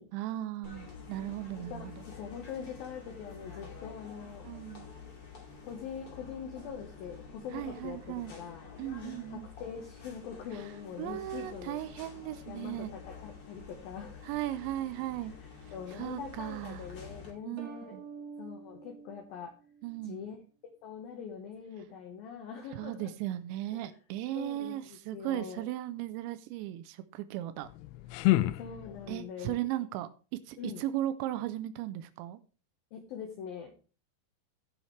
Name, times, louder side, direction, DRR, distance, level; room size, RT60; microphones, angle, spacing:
voice 1, 0.1-1.9 4.4-4.9 7.5-8.3 8.8-9.5 11.0-13.0 14.2-15.3 15.6-16.9 17.4-18.0 19.8-20.2 22.7-27.7 29.1-32.4, right 13 dB, 90° right, 12 dB, 2.9 m, -37 dB
sound 1, 0.6-17.3, left 5 dB, 35° left, 3.3 m, -49 dB
voice 2, 1.7-4.5 5.6-8.7 9.3-11.8 12.5-14.3 15.7-18.0 18.4-19.5 20.0-20.4 20.8-23.1 23.7-23.9 24.4-25.7 28.6-29.6 30.6-30.9 32.9-33.8, left 7 dB, 70° left, 3 dB, 2.6 m, -43 dB
sound 2, 17.6-20.2, right 5 dB, 55° right, 1.7 m, -48 dB
sound 3, 27.6-29.3, left 17 dB, 85° left, 2.4 m, -30 dB
17.0 x 5.8 x 3.2 m, 0.35 s
omnidirectional pair, 5.2 m